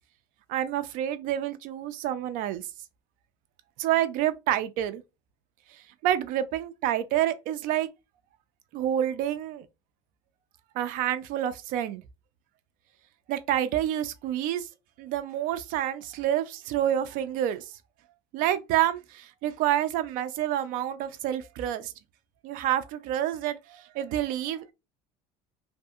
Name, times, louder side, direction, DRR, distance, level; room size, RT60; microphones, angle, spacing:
voice 1, 0.5-2.7 3.8-5.0 5.7-7.9 8.7-9.7 10.7-12.0 13.3-14.7 15.0-17.7 18.3-21.9 22.4-24.7, right 11 dB, 55° right, 0.4 m, -28 dB
2.7 x 2.6 x 2.4 m
cardioid pair, 145°, 17 cm